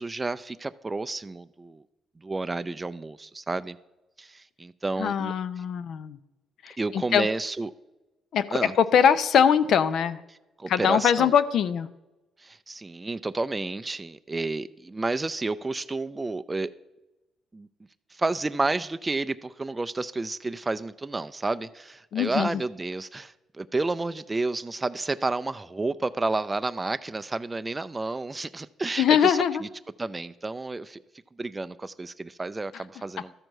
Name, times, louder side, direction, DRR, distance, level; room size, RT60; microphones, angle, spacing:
voice 1, 0.0-1.8 2.2-3.8 4.2-5.3 6.8-7.7 8.5-8.7 10.6-11.3 12.4-16.7 17.5-17.7 18.1-29.7 30.0-31.0 31.4-33.3, right 3 dB, 20° right, 0.3 m, -31 dB
voice 2, 5.0-6.2 6.6-7.3 8.3-10.2 10.7-11.9 22.1-22.6 29.0-29.6, left 8 dB, 70° left, 0.6 m, -22 dB
12.5 x 4.5 x 6.5 m
cardioid pair, 90°, 0 cm